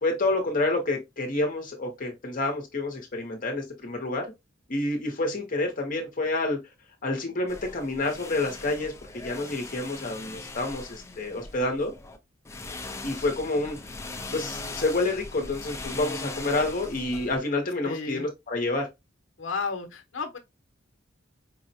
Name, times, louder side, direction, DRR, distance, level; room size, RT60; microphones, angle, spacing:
voice 1, 0.0-4.3 4.7-6.6 7.0-11.9 13.0-13.8 14.3-18.9, left 2 dB, 45° left, 0.9 m, -28 dB
sound 1, 7.5-12.2 12.5-17.4, left 2 dB, 15° left, 0.5 m, -40 dB
voice 2, 17.8-18.2 19.4-20.4, left 4 dB, 85° left, 0.8 m, -32 dB
4.7 x 2.1 x 2.7 m
head